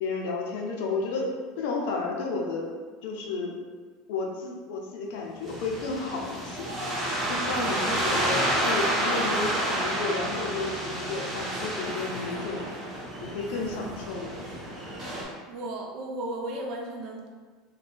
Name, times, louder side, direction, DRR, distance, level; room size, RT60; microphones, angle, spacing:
voice 1, 0.0-2.7 3.0-3.5 4.1-6.7 7.3-12.7 13.2-14.4, left 3 dB, 70° left, 0 dB, 0.5 m, -32 dB
sound 1, 5.5-15.2, right 1 dB, 30° right, 1.3 m, -30 dB
voice 2, 15.5-17.3, right 1 dB, 60° right, 0 dB, 0.5 m, -35 dB
2.5 x 2.1 x 3.3 m, 1.5 s
hypercardioid pair, 95°, 0 cm